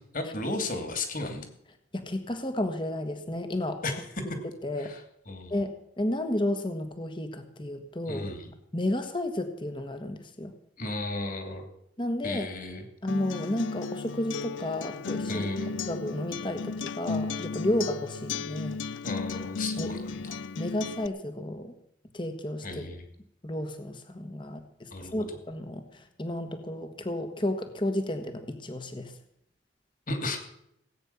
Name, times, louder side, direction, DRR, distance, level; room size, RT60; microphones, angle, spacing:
voice 1, 0.1-1.5 3.8-4.1 4.8-5.6 8.1-8.5 10.8-11.7 12.2-12.9 15.3-15.7 19.0-20.4 22.6-23.0 24.9-25.3 30.1-30.4, left 2 dB, 45° left, 6 dB, 2.7 m, -34 dB
voice 2, 1.9-3.8 4.6-4.9 5.5-8.3 8.7-10.5 12.0-12.5 13.0-15.5 15.8-18.8 19.8-19.9 20.6-21.8 22.1-22.8 23.4-29.1, left 1 dB, 25° left, 8 dB, 1.4 m, -32 dB
Acoustic guitar, 13.1-21.1, left 4 dB, 75° left, 0.5 m, -35 dB
18.0 x 9.2 x 7.0 m, 0.77 s
head